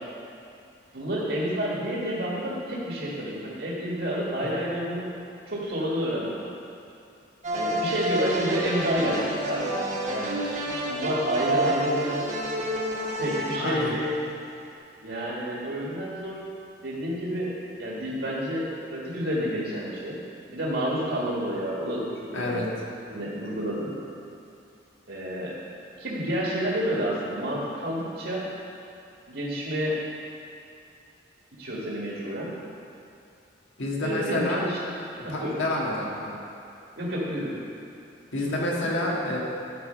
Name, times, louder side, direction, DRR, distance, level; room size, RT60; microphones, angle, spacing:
voice 1, 0.9-5.1 5.5-6.5 7.5-9.8 10.1-10.4 10.9-12.3 13.2-14.2 15.0-16.4 16.8-17.5 17.8-20.2 20.5-22.7 23.1-23.9 25.1-25.6 26.0-28.5 29.3-30.0 31.5-32.5 34.0-34.8 35.2-35.6 37.0-37.6 38.4-38.5, equal, 65° right, -6 dB, 1.6 m, -29 dB
sound 1, 7.4-14.4, right 1 dB, 40° right, 1.0 m, -30 dB
voice 2, 13.6-14.0 22.3-22.7 33.8-34.6 35.3-36.4 38.3-39.4, left 1 dB, 85° left, -3 dB, 1.7 m, -28 dB
12.0 x 4.8 x 5.6 m, 2.6 s
head